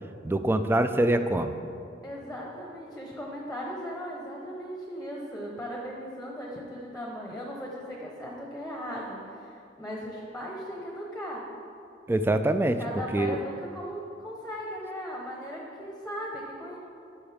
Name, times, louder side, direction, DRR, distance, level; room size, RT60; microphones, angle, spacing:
voice 1, 0.2-1.5 12.1-12.8 13.1-13.4, right 1 dB, 10° right, 9 dB, 0.3 m, -24 dB
voice 2, 2.0-11.4 12.8-16.8, equal, 5° left, -2 dB, 0.9 m, -38 dB
11.5 x 6.3 x 3.4 m, 2.6 s
head